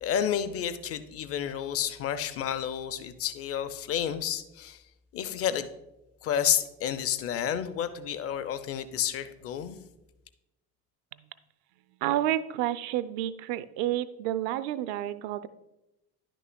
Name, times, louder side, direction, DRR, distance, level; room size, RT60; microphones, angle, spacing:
voice 1, 0.0-4.8 5.1-5.7 6.2-9.8, left 9 dB, 30° left, 13 dB, 0.5 m, -30 dB
voice 2, 12.0-15.5, right 12 dB, 50° right, 15 dB, 0.5 m, -30 dB
10.5 x 6.0 x 2.2 m, 0.93 s
figure-of-eight pair, 55°, 47 cm